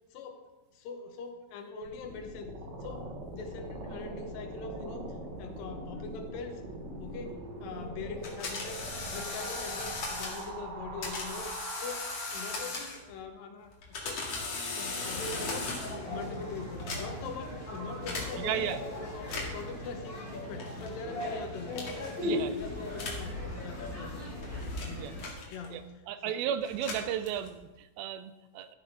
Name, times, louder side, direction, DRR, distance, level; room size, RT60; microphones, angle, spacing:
voice 1, 0.1-0.4 0.7-2.5 2.8-5.1 5.4-6.6 7.0-8.9 9.1-11.5 11.8-12.1 12.3-14.3 14.6-15.8 16.1-18.7 19.0-24.4 24.9-25.1 25.5-25.8 26.3-26.4, left 4 dB, 75° left, 5 dB, 2.8 m, -42 dB
sound 1, 1.8-12.8, right 2 dB, 55° right, 2.8 m, -42 dB
sound 2, 8.2-10.5 11.0-13.1 13.7-16.1 16.7-17.3 18.1-18.3 19.2-19.7 20.6-20.9 21.7-22.1 22.9-23.3 24.1-25.8 26.6-27.6, left 3 dB, 50° left, 2.9 m, -38 dB
sound 3, 15.0-25.2, left 1 dB, 25° left, 4.9 m, -38 dB
voice 2, 18.4-18.8 22.2-22.5 25.0-25.1 25.7-25.8 26.1-28.7, right 9 dB, 85° right, 11 dB, 2.5 m, -34 dB
13.0 x 8.3 x 5.5 m, 1.1 s
omnidirectional pair, 4.1 m